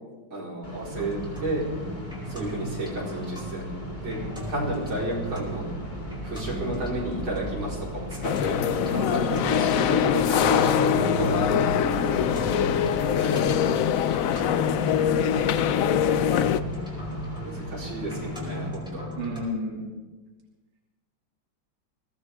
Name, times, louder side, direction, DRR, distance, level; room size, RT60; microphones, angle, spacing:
voice 1, 0.3-1.6 2.3-3.7 3.9-4.2 4.5-5.6 6.2-12.0 12.4-12.5 13.0-14.7 17.4-19.1, right 1 dB, 90° right, -5 dB, 5.6 m, -32 dB
sound 1, 0.6-18.7, equal, 25° left, 2.2 m, -39 dB
sound 2, 0.9-19.5, equal, ahead, 4.8 m, -36 dB
sound 3, 8.2-16.6, left 9 dB, 75° left, 0.7 m, -23 dB
voice 2, 8.8-10.1 15.2-15.6 19.1-19.8, left 1 dB, 45° right, -3 dB, 3.3 m, -34 dB
22.5 x 17.5 x 3.7 m, 1.2 s
omnidirectional pair, 2.1 m